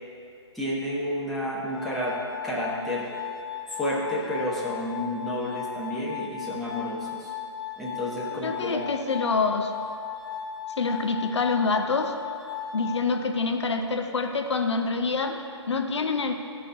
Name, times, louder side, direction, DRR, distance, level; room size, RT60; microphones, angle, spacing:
voice 1, 0.5-2.2 2.4-3.1 3.7-7.3 7.8-8.8, left 1 dB, ahead, -7 dB, 0.9 m, -30 dB
Glass, 1.7-13.7, left 8 dB, 45° left, 1.0 m, -37 dB
voice 2, 8.4-9.7 10.8-12.2 12.7-16.3, left 4 dB, 70° left, 5 dB, 0.5 m, -26 dB
12.0 x 4.2 x 3.4 m, 2.5 s
figure-of-eight pair, 135°, 15 cm